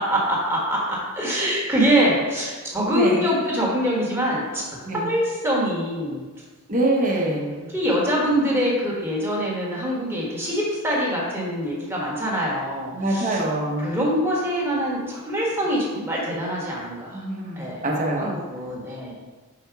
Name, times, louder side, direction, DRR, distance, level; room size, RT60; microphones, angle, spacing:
voice 1, 0.0-6.2 7.7-13.4 13.8-17.2 17.6-17.8 18.2-19.1, equal, 10° right, -4 dB, 1.4 m, -24 dB
voice 2, 2.9-3.3 4.8-5.1 6.7-7.7 12.9-13.9 17.1-18.3, right 1 dB, 35° right, -1 dB, 1.0 m, -24 dB
4.9 x 4.3 x 4.6 m, 1.3 s
head